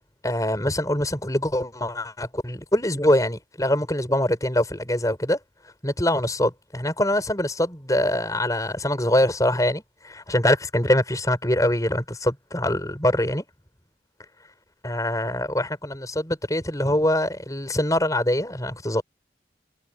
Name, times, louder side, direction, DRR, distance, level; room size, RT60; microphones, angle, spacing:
voice 1, 0.2-5.4 5.8-13.4 14.8-19.0, left 1 dB, 20° left, 6.6 m, -24 dB
head